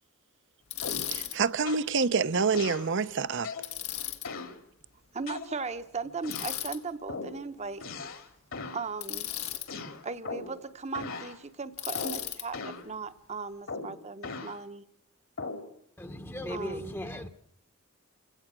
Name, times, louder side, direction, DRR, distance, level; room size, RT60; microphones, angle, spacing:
Bicycle, 0.7-1.4 3.6-4.3 6.3-6.8 9.0-9.7 11.8-12.5, left 13 dB, 90° left, 1.7 m, -35 dB
sound 1, 0.8-1.2 1.7-1.9 2.5-2.9 3.4-3.7 4.2-4.6 5.3-5.8 6.2-6.6 7.1-7.4 7.8-8.3 8.5-8.9 9.7-10.6 10.9-11.4 11.9-12.3 12.5-12.9 13.7-14.6 15.4-15.7, left 4 dB, 65° left, 2.1 m, -39 dB
voice 1, 1.1-3.5, right 5 dB, 60° right, 0.7 m, -27 dB
voice 2, 5.1-7.9 8.7-9.3 10.0-14.8 16.5-17.0, right 4 dB, 30° right, 0.9 m, -37 dB
voice 3, 16.0-17.3, left 1 dB, 10° left, 0.9 m, -37 dB
29.0 x 16.5 x 6.1 m
head